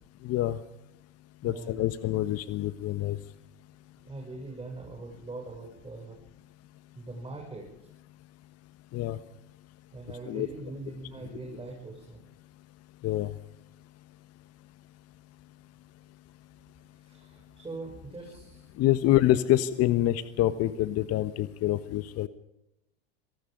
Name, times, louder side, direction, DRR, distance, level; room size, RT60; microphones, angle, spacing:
voice 1, 0.2-0.6 1.4-3.2 8.9-9.2 10.3-10.5 13.0-13.3 18.8-22.3, left 14 dB, 45° left, 13 dB, 1.4 m, -26 dB
voice 2, 1.4-1.9 4.0-6.2 7.0-7.7 9.9-12.2 17.0-18.7 18.9-19.0, right 3 dB, 15° right, 0 dB, 7.3 m, -42 dB
27.5 x 19.0 x 5.4 m, 0.84 s
hypercardioid pair, 90°, 33 cm